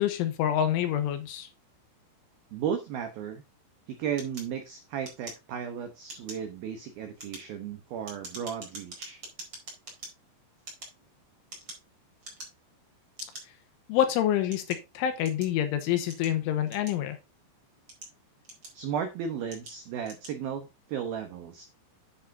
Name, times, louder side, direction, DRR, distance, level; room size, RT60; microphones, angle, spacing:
voice 1, 0.0-1.5 13.9-17.2, left 11 dB, 80° left, 3.3 m, -27 dB
voice 2, 2.5-3.4 3.9-9.2 18.7-21.7, right 8 dB, 80° right, 2.1 m, -35 dB
sound 1, 4.2-5.7 6.0-6.5 7.0-10.1 10.6-11.9 12.2-12.7 13.2-13.4 14.1-15.6 16.1-17.3 17.7-18.9 19.5-19.8 20.0-20.4, right 2 dB, 25° right, 4.8 m, -45 dB
10.0 x 8.6 x 2.7 m
omnidirectional pair, 5.7 m